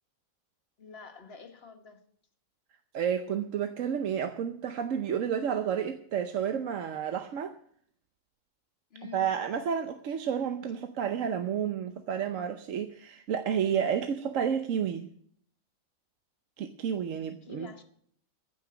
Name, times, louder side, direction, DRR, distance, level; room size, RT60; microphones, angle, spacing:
voice 1, 0.8-2.0 8.9-9.5 17.4-17.8, left 5 dB, 50° left, 6 dB, 1.5 m, -48 dB
voice 2, 2.9-7.6 9.1-15.1 16.6-17.7, right 8 dB, 70° right, 7 dB, 1.2 m, -31 dB
15.0 x 6.0 x 9.4 m, 0.63 s
omnidirectional pair, 1.4 m